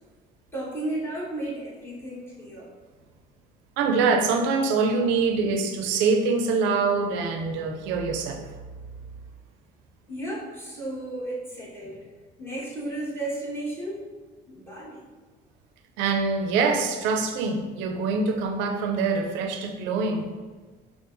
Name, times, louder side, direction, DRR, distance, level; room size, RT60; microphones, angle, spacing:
voice 1, 0.5-2.7 10.1-12.1 12.4-14.0 14.5-15.1, right 1 dB, 10° left, -7 dB, 1.4 m, -34 dB
voice 2, 3.8-8.5 16.0-20.3, right 4 dB, 85° right, 4 dB, 0.5 m, -24 dB
5.2 x 2.4 x 2.6 m, 1.3 s
supercardioid pair, 85°, 19 cm